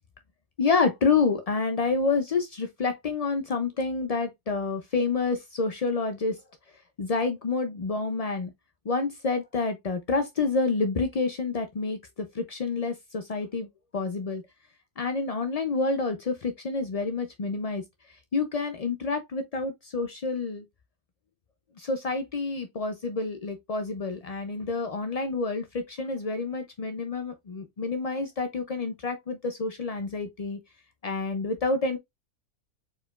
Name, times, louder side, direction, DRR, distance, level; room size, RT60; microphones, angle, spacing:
voice 1, 0.6-6.4 7.0-8.5 8.9-13.7 13.9-14.4 15.0-17.8 18.3-20.6 21.8-30.6 31.0-32.0, left 4 dB, 60° left, 0.4 m, -28 dB
4.9 x 4.4 x 2.3 m
omnidirectional pair, 1.4 m